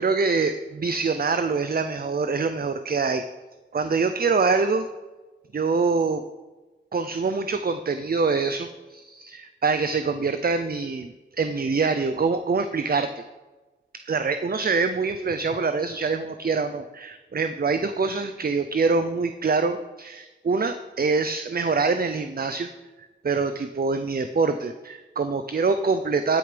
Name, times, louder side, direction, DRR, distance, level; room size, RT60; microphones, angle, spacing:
voice 1, 0.0-3.2 3.7-4.9 5.5-6.2 6.9-13.2 13.9-22.7 23.2-26.4, right 4 dB, 50° right, 9 dB, 0.6 m, -25 dB
16.0 x 6.7 x 5.1 m, 1.2 s
wide cardioid pair, 55°, 20 cm